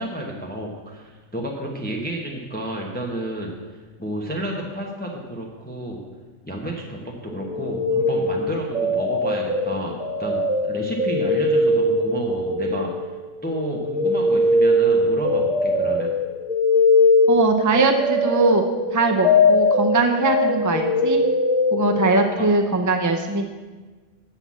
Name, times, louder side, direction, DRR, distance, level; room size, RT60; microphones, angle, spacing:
voice 1, 0.0-3.5 4.0-6.0 6.4-13.0 13.4-16.1 22.4-22.5, right 1 dB, 10° left, -1 dB, 1.0 m, -31 dB
sound 1, 7.3-13.2 13.5-22.1, left 2 dB, 5° right, 1.3 m, -21 dB
voice 2, 17.3-18.6 18.9-21.2 21.7-23.5, right 3 dB, 30° right, 5 dB, 0.3 m, -21 dB
7.9 x 5.8 x 7.3 m, 1.3 s
omnidirectional pair, 1.3 m